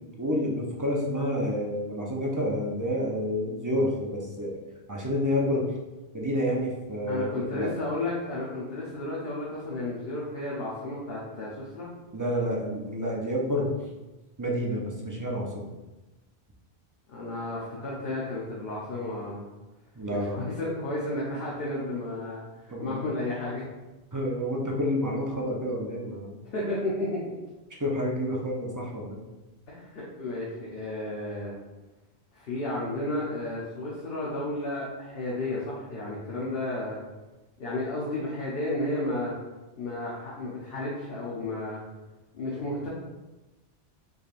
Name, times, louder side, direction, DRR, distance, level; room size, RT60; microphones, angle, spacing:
voice 1, 0.2-4.6 4.9-5.7 6.1-7.8 12.1-13.7 14.4-15.7 20.0-20.5 22.7-23.0 24.1-26.4 27.8-29.2, equal, 25° right, -3 dB, 0.5 m, -29 dB
voice 2, 7.1-11.9 17.1-19.5 20.1-23.6 26.5-27.2 29.7-31.5 32.3-37.0 37.6-39.3 39.8-41.8 42.3-42.9, left 2 dB, 65° left, -6 dB, 1.0 m, -32 dB
5.0 x 3.3 x 2.5 m, 1.1 s
omnidirectional pair, 1.1 m